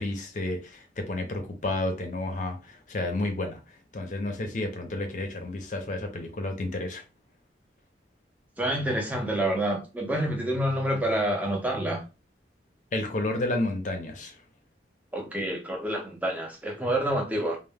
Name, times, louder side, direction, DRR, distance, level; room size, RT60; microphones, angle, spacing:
voice 1, 0.0-7.0 12.9-14.4, left 2 dB, 40° left, 0.5 m, -31 dB
voice 2, 8.6-12.0 15.1-17.6, right 1 dB, 10° right, 0.5 m, -28 dB
2.1 x 2.1 x 3.3 m
head